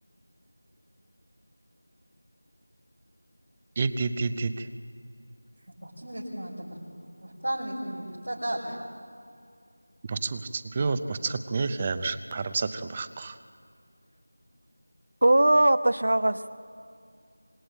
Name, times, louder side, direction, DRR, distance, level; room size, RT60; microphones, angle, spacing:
voice 1, 3.8-4.7 10.1-13.4, right 4 dB, 15° right, 12 dB, 0.6 m, -29 dB
voice 2, 5.7-6.8 7.2-8.6, right 1 dB, 85° right, -7 dB, 7.1 m, -34 dB
voice 3, 15.2-16.5, right 1 dB, 60° right, 12 dB, 1.1 m, -20 dB
26.5 x 20.5 x 8.9 m, 2.3 s
figure-of-eight pair, 175°, 0 cm